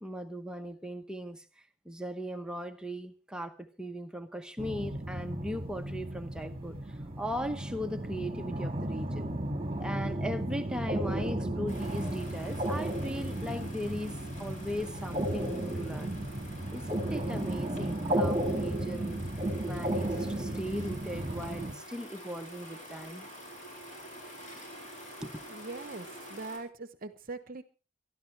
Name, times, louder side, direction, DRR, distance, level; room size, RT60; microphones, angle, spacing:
voice 1, 0.0-1.5 1.8-9.3 9.8-16.1 16.7-19.2 19.6-23.3 25.2-25.5, equal, 5° right, 0.9 m, -38 dB
sound 1, 4.6-21.7, right 1 dB, 25° right, 1.7 m, -34 dB
sound 2, 11.7-26.6, equal, 35° left, 4.4 m, -48 dB
voice 2, 25.5-27.6, right 3 dB, 40° right, 0.9 m, -41 dB
23.5 x 12.5 x 3.3 m
head